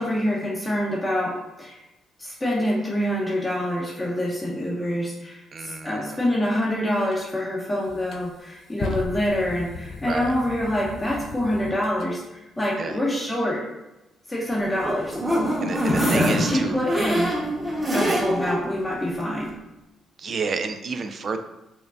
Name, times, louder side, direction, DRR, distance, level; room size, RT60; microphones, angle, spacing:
voice 1, 0.0-1.8 2.2-13.6 14.3-15.2 16.0-17.3 17.9-19.5, left 1 dB, 15° left, -4 dB, 0.7 m, -26 dB
voice 2, 5.5-6.2 10.0-10.3 12.8-13.0 15.6-16.8 18.1-18.2 20.2-21.4, right 4 dB, 45° right, 8 dB, 0.3 m, -30 dB
sound 1, 7.1-7.2 7.8-12.1, left 3 dB, 60° left, 0.3 m, -36 dB
sound 2, 14.6-18.6 19.0-19.1 19.4-19.5, equal, 15° right, 1.0 m, -24 dB
4.5 x 2.2 x 2.4 m, 0.96 s
cardioid pair, 90°, 0 cm